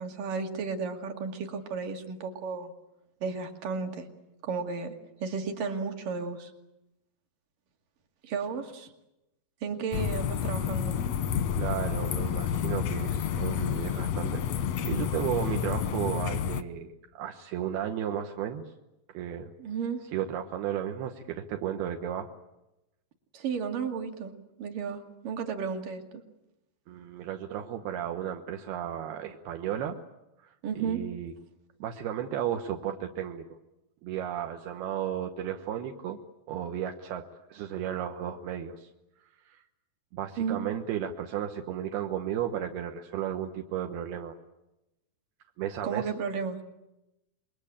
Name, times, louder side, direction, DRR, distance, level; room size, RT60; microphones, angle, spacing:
voice 1, 0.0-2.7 3.2-4.1 4.4-4.9 5.2-6.5 8.2-8.9 9.6-11.0 19.6-20.0 23.3-24.3 24.6-26.2 30.6-31.0 40.4-40.6 45.8-46.6, right 5 dB, 60° right, 4 dB, 3.8 m, -33 dB
sound 1, 9.9-16.6, left 8 dB, 70° left, 1.6 m, -30 dB
voice 2, 11.6-16.9 17.2-18.6 19.1-19.5 20.1-22.3 26.9-30.0 30.4-31.3 31.8-33.4 34.0-36.2 36.5-37.2 37.5-38.9 39.5-39.6 40.1-44.4 45.6-46.1, right 10 dB, 80° right, 4 dB, 3.2 m, -34 dB
28.0 x 22.5 x 8.8 m, 0.93 s
omnidirectional pair, 4.5 m